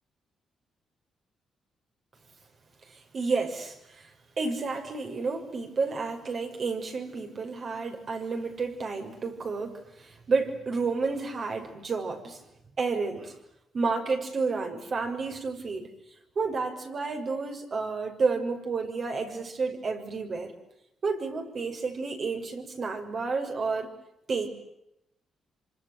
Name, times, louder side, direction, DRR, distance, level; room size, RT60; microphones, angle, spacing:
voice 1, 3.1-3.8 4.4-12.4 12.8-13.3 13.7-15.9 16.4-20.5 21.0-23.9 24.3-24.5, right 4 dB, 45° right, 4 dB, 6.3 m, -30 dB
27.0 x 26.5 x 8.2 m, 0.83 s
cardioid pair, 100°, 0 cm